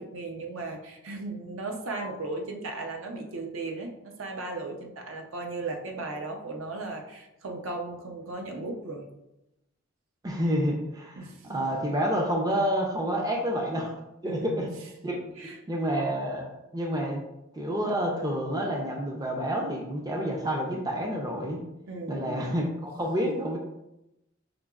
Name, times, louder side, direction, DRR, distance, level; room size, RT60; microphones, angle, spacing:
voice 1, 0.0-9.1 11.2-11.5 14.2-14.7 15.4-15.6 21.9-22.6, right 2 dB, 75° right, 2 dB, 0.6 m, -36 dB
voice 2, 10.2-13.9 14.2-15.2 15.4-16.5 16.7-17.2 17.6-21.6 22.1-23.6, equal, 20° right, 0 dB, 0.4 m, -29 dB
5.0 x 2.8 x 2.3 m, 0.90 s
head